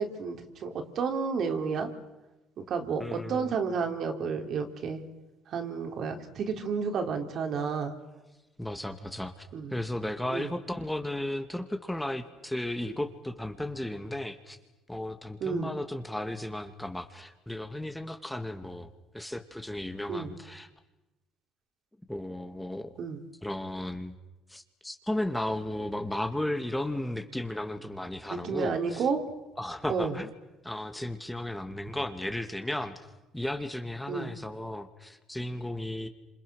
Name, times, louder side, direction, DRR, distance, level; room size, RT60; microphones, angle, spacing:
voice 1, 0.0-1.9 2.6-5.0 5.5-8.0 9.5-9.7 10.3-10.5 12.9-13.0 15.4-15.7 20.1-20.3 23.0-23.2 28.3-29.2 29.9-30.1 34.1-34.3, right 5 dB, 60° right, 5 dB, 4.0 m, -31 dB
voice 2, 3.0-3.5 8.6-14.6 14.9-18.9 19.1-20.7 22.1-22.9 23.4-24.1 24.5-29.1 29.6-30.3 30.6-33.0 33.3-36.1, left 1 dB, 5° left, 7 dB, 2.4 m, -35 dB
29.5 x 27.5 x 6.5 m, 1.0 s
supercardioid pair, 85°, 0 cm